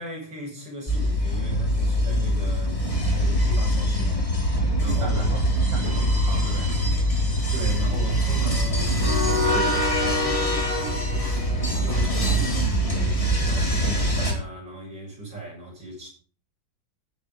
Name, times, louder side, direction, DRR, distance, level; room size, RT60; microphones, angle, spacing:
voice 1, 0.0-5.3 5.8-6.1 7.5-16.1, right 3 dB, 55° right, 7.1 m, -36 dB
sound 1, 0.9-14.3, equal, 15° left, 2.4 m, -23 dB
voice 2, 4.8-6.8 12.4-13.0, right 3 dB, 75° right, 3.9 m, -36 dB
16.5 x 8.5 x 3.8 m
omnidirectional pair, 2.4 m